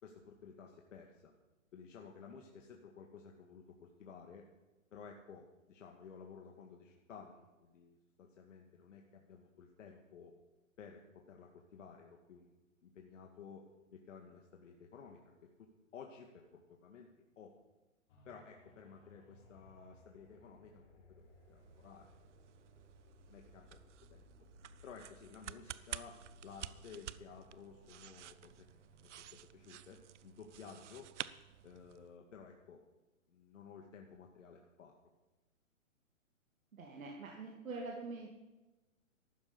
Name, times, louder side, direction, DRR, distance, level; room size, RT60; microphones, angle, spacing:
voice 1, 0.0-1.3 1.7-4.4 4.9-10.3 10.8-12.5 12.8-15.5 15.9-17.5 18.3-22.1 23.3-23.7 24.1-24.2 24.8-31.1 31.6-32.8 33.3-34.9, left 6 dB, 65° left, 1 dB, 2.0 m, -55 dB
sound 1, 18.1-31.7 32.2-32.3, left 2 dB, 40° left, 4.1 m, -64 dB
sound 2, 21.3-32.1, right 11 dB, 60° right, 0.7 m, -51 dB
voice 2, 36.7-38.3, right 3 dB, 75° right, 0 dB, 2.5 m, -45 dB
14.0 x 12.5 x 5.3 m, 1.1 s
hypercardioid pair, 145°, 41 cm